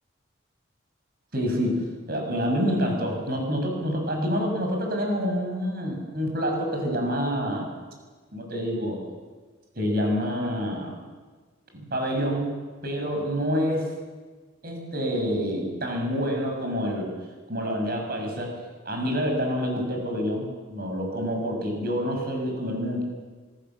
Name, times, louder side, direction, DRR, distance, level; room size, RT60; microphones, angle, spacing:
voice 1, 1.3-7.7 8.3-9.0 9.7-11.0 11.7-12.5 12.8-13.8 14.6-17.1 17.5-18.5 18.8-23.0, equal, 50° right, 2 dB, 6.7 m, -27 dB
26.5 x 18.5 x 7.6 m, 1.4 s
head